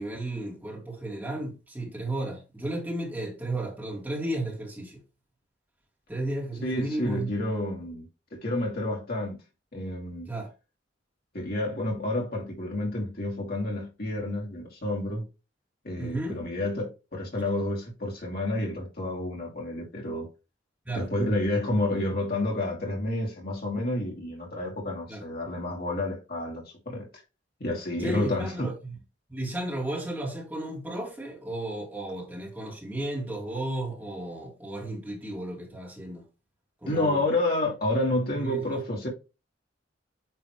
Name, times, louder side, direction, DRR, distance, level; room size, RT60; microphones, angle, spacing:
voice 1, 0.0-5.0 6.1-7.3 10.3-10.5 16.0-16.4 20.9-21.1 25.1-25.2 28.0-29.0 29.3-36.2 36.8-37.3 38.4-38.6, right 1 dB, 10° right, 2.2 m, -33 dB
voice 2, 6.6-9.4 9.7-10.3 11.3-15.2 15.8-20.3 20.9-27.1 27.6-28.7 36.9-39.1, left 1 dB, 55° left, 2.6 m, -29 dB
9.0 x 3.4 x 3.1 m
head